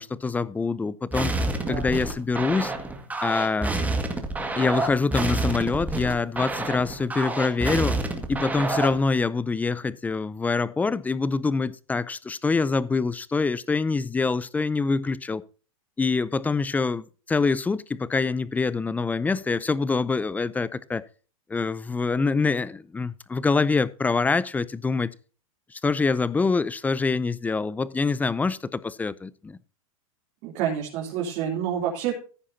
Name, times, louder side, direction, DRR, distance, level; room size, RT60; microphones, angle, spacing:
voice 1, 0.0-1.3 1.7-2.7 3.2-3.7 4.6-8.0 8.3-15.4 16.0-21.0 21.5-25.1 25.7-29.6, left 4 dB, 10° left, 0.5 m, -25 dB
sound 1, 1.1-9.1, right 2 dB, 10° right, 1.9 m, -28 dB
voice 2, 30.4-32.1, right 9 dB, 45° right, 3.3 m, -28 dB
15.0 x 10.0 x 2.8 m
hypercardioid pair, 130°, 18 cm